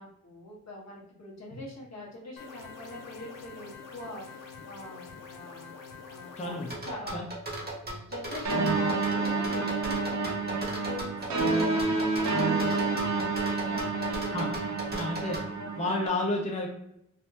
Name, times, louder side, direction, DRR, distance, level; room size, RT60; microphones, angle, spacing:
voice 1, 0.0-5.7 6.1-6.5 6.8-7.2 8.0-14.4, left 1 dB, 55° left, -3 dB, 1.1 m, -43 dB
sound 1, 2.4-6.8, left 5 dB, 85° left, 0.5 m, -46 dB
voice 2, 6.4-6.7 7.1-7.3 14.3-14.5 14.9-15.4 15.8-16.7, left 2 dB, 20° left, -1 dB, 0.5 m, -31 dB
sound 2, 6.7-15.5, right 1 dB, 30° right, 1.1 m, -37 dB
sound 3, 8.4-16.1, right 3 dB, 60° right, 0.6 m, -29 dB
3.3 x 2.1 x 2.7 m, 0.80 s
cardioid pair, 65°, 32 cm